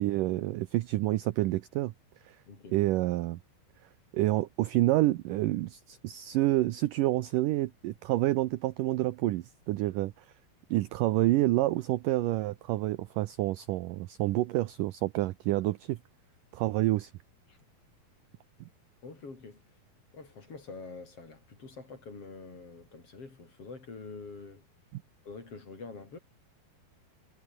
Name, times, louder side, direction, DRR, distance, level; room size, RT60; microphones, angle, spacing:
voice 1, 0.0-1.9 2.3-2.4 2.7-3.4 4.1-10.3 10.7-16.0 16.5-17.1 24.9-25.0, right 17 dB, 75° right, 2.1 m, -28 dB
voice 2, 2.4-2.8 17.5-17.6 19.0-19.6 20.1-24.6 25.2-26.2, left 4 dB, 35° left, 5.7 m, -46 dB
omnidirectional pair, 4.5 m